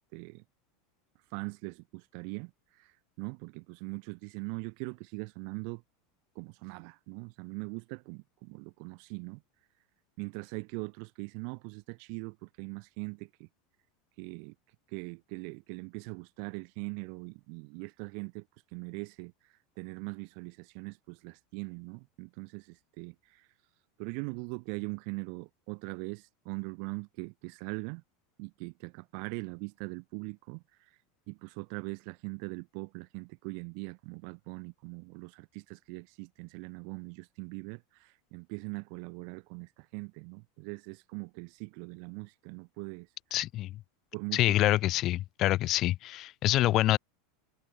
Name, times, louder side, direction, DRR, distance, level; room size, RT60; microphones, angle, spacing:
voice 1, 0.1-0.4 1.3-5.8 6.3-9.4 10.2-13.5 14.2-14.5 14.9-23.5 24.0-28.0 28.4-31.0 31.3-43.1 44.1-44.5, right 40 dB or more, 50° right, 6.0 m, -41 dB
voice 2, 43.3-43.7 44.3-47.0, left 15 dB, 35° left, 0.7 m, -26 dB
supercardioid pair, 160°, 0 cm